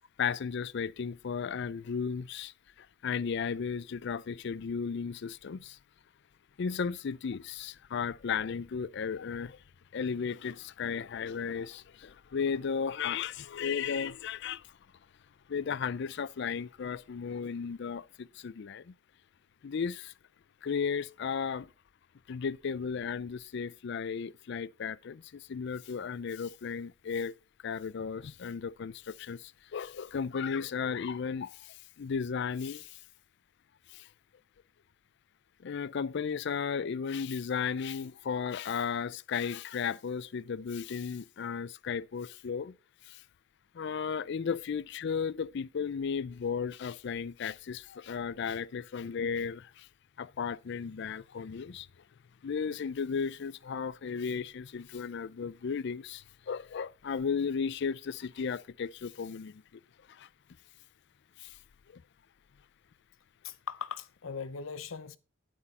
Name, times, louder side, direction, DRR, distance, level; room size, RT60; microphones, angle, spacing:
voice 1, 0.2-5.8 6.6-9.6 9.9-14.6 15.5-18.9 19.6-20.1 20.6-21.7 22.3-27.3 27.6-33.0 33.9-34.1 35.6-42.7 43.1-43.2 43.7-49.9 50.2-51.9 52.4-59.6 60.1-60.3 61.4-61.5 61.9-62.0, left 6 dB, 60° left, 0.4 m, -35 dB
voice 2, 63.4-65.2, left 6 dB, 80° left, 0.8 m, -39 dB
11.0 x 8.5 x 4.1 m
head